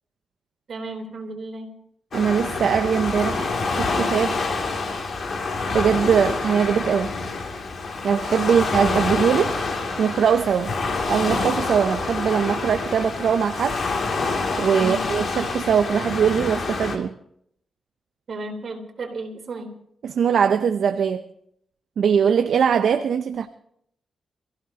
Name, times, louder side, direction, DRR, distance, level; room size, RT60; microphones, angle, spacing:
voice 1, 0.7-1.7 3.4-3.5 8.5-8.6 14.8-15.0 18.3-19.7, right 2 dB, 60° right, 3.7 m, -33 dB
Waves surf, 2.1-17.0, left 3 dB, 60° left, 2.6 m, -27 dB
voice 2, 2.1-4.4 5.7-7.2 8.0-9.6 10.0-10.7 11.1-13.9 14.6-17.2 20.0-21.3 22.0-23.5, right 7 dB, 75° right, 0.6 m, -21 dB
27.5 x 15.5 x 2.9 m
cardioid pair, 95°, 0 cm